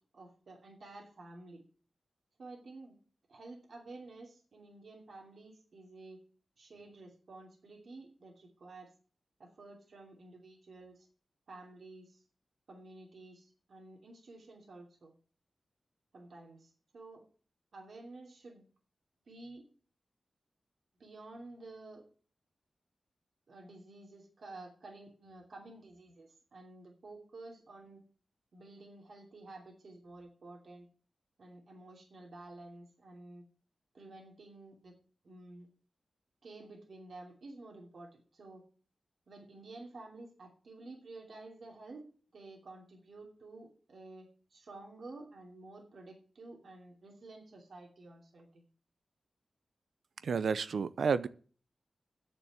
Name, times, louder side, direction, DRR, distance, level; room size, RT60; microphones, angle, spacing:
voice 1, 0.1-1.6 2.4-3.0 3.3-6.2 6.6-8.9 9.4-11.1 11.5-12.2 12.7-15.1 16.1-17.2 17.7-18.6 19.3-19.6 21.0-22.0 23.5-28.0 28.5-30.9 31.4-33.4 33.9-34.9 35.2-35.7 36.4-38.6 39.3-42.0 42.3-48.6, right 2 dB, 65° right, 2.8 m, -51 dB
voice 2, 50.2-51.3, right 5 dB, 85° right, 0.6 m, -30 dB
9.2 x 6.8 x 8.8 m
wide cardioid pair, 115°, 0 cm